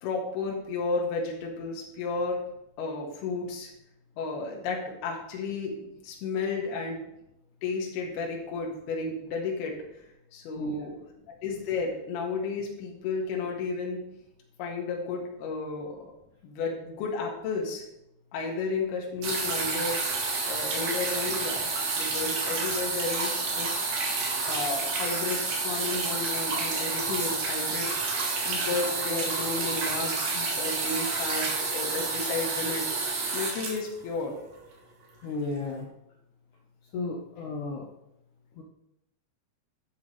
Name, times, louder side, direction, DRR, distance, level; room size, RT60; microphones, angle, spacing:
voice 1, 0.0-2.4 2.8-3.7 4.2-7.0 7.6-9.8 10.3-10.9 11.3-14.0 14.6-16.1 16.4-17.8 18.3-20.0 20.5-21.7 22.0-24.0 24.4-27.9 28.5-32.9 33.3-34.4, left 4 dB, 65° left, -1 dB, 3.5 m, -32 dB
voice 2, 10.6-10.9 35.2-35.9 36.9-37.9 38.6-38.7, left 3 dB, 85° left, -1 dB, 1.7 m, -33 dB
sound 1, 19.2-34.6 35.5-35.6, right 3 dB, 60° right, 3.7 m, -29 dB
12.0 x 9.5 x 3.3 m, 0.84 s
omnidirectional pair, 5.2 m